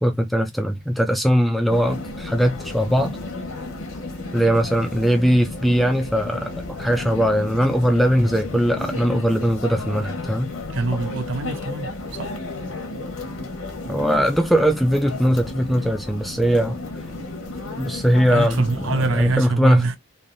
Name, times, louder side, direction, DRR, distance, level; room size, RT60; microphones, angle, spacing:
voice 1, 0.0-3.2 4.3-10.5 13.9-16.8 17.8-19.8, equal, ahead, 0.3 m, -20 dB
sound 1, 1.7-19.4, left 2 dB, 75° left, 1.0 m, -33 dB
voice 2, 10.7-12.3 18.3-20.0, right 3 dB, 60° right, 0.5 m, -24 dB
3.2 x 2.5 x 2.5 m
head